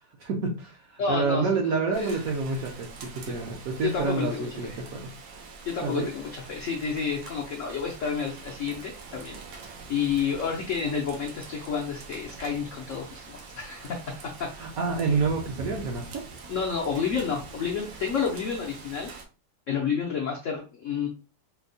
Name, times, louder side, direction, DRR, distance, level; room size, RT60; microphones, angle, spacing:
voice 1, 0.2-5.1 5.8-6.1 14.6-16.2, right 4 dB, 65° right, 1 dB, 0.9 m, -28 dB
voice 2, 1.0-2.1 3.3-3.4 3.8-4.8 5.7-14.1 14.4-14.5 16.5-19.1 19.7-21.1, left 6 dB, 80° left, 0 dB, 0.7 m, -30 dB
Rain, 1.9-19.2, right 4 dB, 90° right, 1.4 m, -44 dB
4.4 x 2.0 x 2.6 m, 0.33 s
omnidirectional pair, 2.0 m